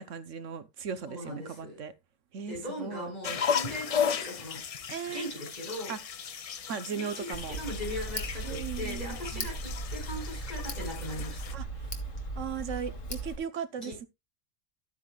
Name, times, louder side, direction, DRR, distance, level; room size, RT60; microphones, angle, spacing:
voice 1, 0.0-1.9 2.3-3.1 4.9-5.3 5.9-6.0 6.7-7.6 8.4-9.5 11.5-11.9 12.4-14.1, right 7 dB, 75° right, 1.3 m, -37 dB
voice 2, 1.1-1.8 2.5-4.6 5.0-5.9 6.9-11.4 13.8-13.9, left 1 dB, 30° left, 6.1 m, -39 dB
sound 1, 3.2-11.5, left 7 dB, 60° left, 0.3 m, -35 dB
Tick, 7.3-13.4, right 1 dB, 85° left, 1.9 m, -37 dB
12.0 x 9.0 x 2.3 m
omnidirectional pair, 1.3 m